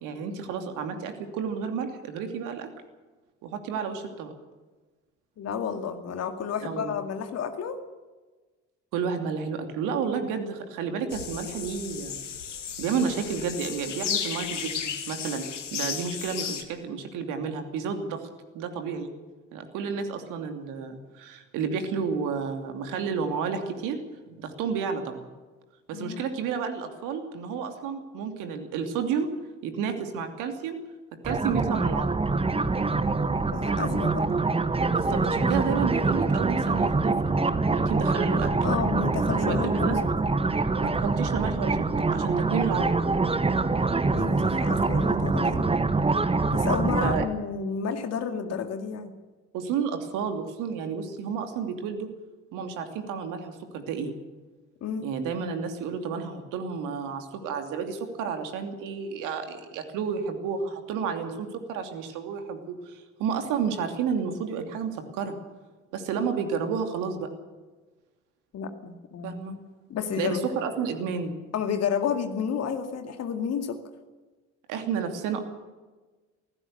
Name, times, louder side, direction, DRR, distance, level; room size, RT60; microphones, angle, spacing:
voice 1, 0.0-2.7 3.4-4.3 6.6-7.0 8.9-12.2 12.8-18.3 18.5-19.1 19.5-24.0 24.3-25.3 25.9-29.3 29.6-30.8 31.2-32.2 34.9-37.1 37.7-38.5 39.3-40.0 40.8-43.0 47.0-47.3 49.5-52.1 52.5-54.1 55.0-65.3 65.9-67.3 69.2-69.6 70.2-71.4 74.7-75.4, right 6 dB, 60° right, 6 dB, 2.8 m, -31 dB
voice 2, 5.4-7.8 25.9-26.3 33.4-34.3 38.6-40.0 44.1-45.7 46.5-49.1 54.8-55.1 68.5-69.4 69.9-70.5 71.5-73.8, left 7 dB, 45° left, 6 dB, 2.2 m, -31 dB
sound 1, 11.1-16.6, left 7 dB, 80° left, 1.6 m, -34 dB
sound 2, 31.2-47.3, right 3 dB, 15° right, 1.4 m, -25 dB
24.0 x 16.0 x 6.7 m, 1.3 s
figure-of-eight pair, 50°, 36 cm